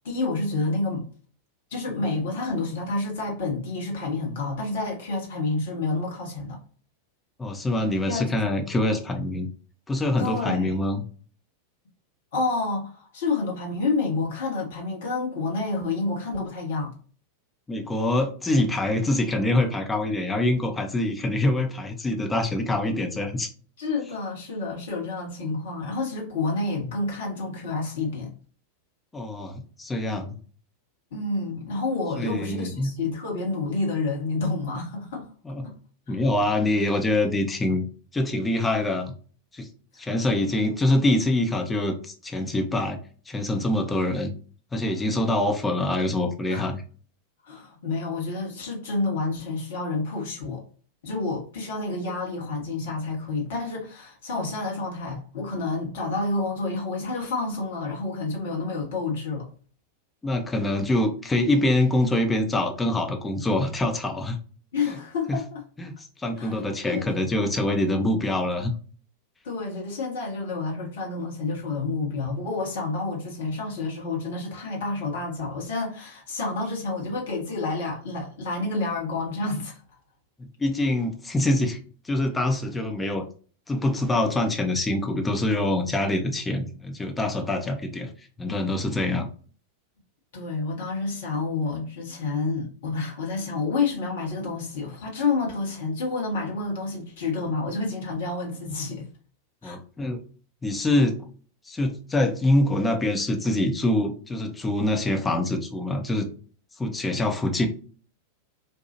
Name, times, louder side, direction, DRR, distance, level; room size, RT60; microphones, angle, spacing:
voice 1, 0.0-1.1 1.7-6.6 8.1-8.2 10.2-10.7 12.3-16.9 23.8-28.3 31.1-35.3 35.6-35.7 36.1-36.2 46.5-46.7 47.4-50.6 51.0-59.5 64.7-65.6 66.4-67.1 69.4-79.8 90.3-99.1 99.6-99.8, left 3 dB, 55° left, 1.1 m, -29 dB
voice 2, 7.4-9.5 9.9-11.0 17.7-23.5 29.1-30.4 32.2-33.0 35.4-35.7 36.1-37.8 38.1-39.1 39.5-39.7 40.0-43.0 43.3-44.3 44.7-46.8 60.2-64.4 64.9-65.0 65.3-65.4 65.8-68.7 80.4-81.8 82.0-83.2 83.7-88.1 88.4-89.3 99.6-100.2 100.6-101.3 101.7-106.3 106.8-107.7, left 1 dB, 10° left, 0.8 m, -25 dB
4.4 x 2.3 x 2.8 m
figure-of-eight pair, 90°, 0 cm